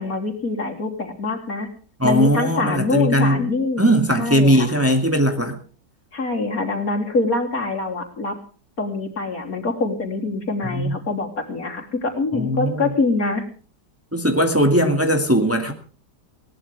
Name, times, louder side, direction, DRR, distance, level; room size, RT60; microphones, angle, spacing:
voice 1, 0.0-1.7 2.0-3.9 4.2-4.7 6.1-8.4 8.8-13.4, left 3 dB, 55° left, 2 dB, 3.9 m, -24 dB
voice 2, 2.0-3.4 3.8-5.6 10.7-10.9 12.3-12.9 14.1-15.7, equal, 10° right, 4 dB, 2.3 m, -19 dB
21.0 x 18.5 x 3.5 m, 0.39 s
omnidirectional pair, 1.8 m